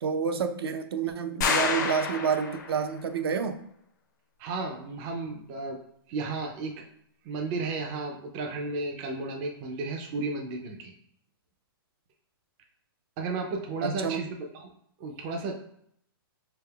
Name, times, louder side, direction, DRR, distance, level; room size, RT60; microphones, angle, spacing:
voice 1, 0.0-3.6 13.8-14.2, right 6 dB, 80° right, 8 dB, 0.5 m, -29 dB
sound 1, 1.4-2.9, left 5 dB, 50° left, 0.5 m, -28 dB
voice 2, 4.4-5.8 6.1-6.8 7.2-10.9 13.2-14.7 15.0-15.5, right 3 dB, 20° right, 2 dB, 0.3 m, -33 dB
4.6 x 3.4 x 2.2 m, 0.70 s
hypercardioid pair, 165°, 13 cm